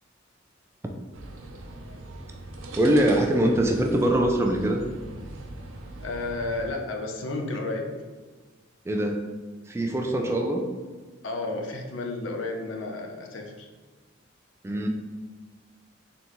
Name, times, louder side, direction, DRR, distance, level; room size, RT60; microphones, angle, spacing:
sound 1, 1.1-6.7, right 2 dB, 85° right, 0.5 m, -40 dB
voice 1, 2.8-4.8 8.9-9.2 9.7-10.6 14.6-14.9, right 1 dB, 15° right, 2 dB, 0.3 m, -23 dB
voice 2, 6.0-7.9 11.2-13.7, left 2 dB, 70° left, 2 dB, 0.6 m, -32 dB
4.0 x 3.4 x 3.0 m, 1.4 s
head